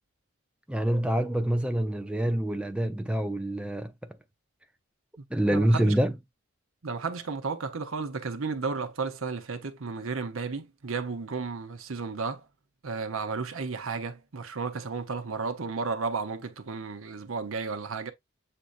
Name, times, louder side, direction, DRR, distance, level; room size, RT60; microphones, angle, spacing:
voice 1, 0.7-3.9 5.3-6.2, right 1 dB, 5° right, 0.5 m, -26 dB
voice 2, 5.5-6.0 6.8-12.4 12.8-18.1, right 4 dB, 80° right, 0.9 m, -33 dB
7.5 x 2.8 x 2.5 m
head